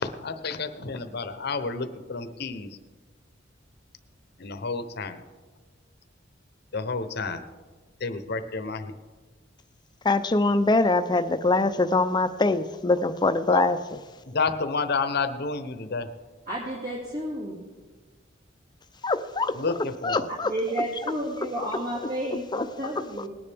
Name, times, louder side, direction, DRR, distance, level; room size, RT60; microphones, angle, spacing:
voice 1, 0.0-2.7 4.4-5.2 6.7-7.4 8.0-8.9 13.5-13.6 14.3-16.1 19.6-19.7 20.0-20.2, left 4 dB, 55° left, 10 dB, 0.8 m, -29 dB
voice 2, 10.0-14.0 19.0-19.5 20.0-20.5 22.5-22.6, left 3 dB, 25° left, 10 dB, 0.5 m, -23 dB
voice 3, 16.5-17.6 20.4-23.3, right 1 dB, 50° right, -6 dB, 2.2 m, -31 dB
19.5 x 9.9 x 3.5 m, 1.3 s
head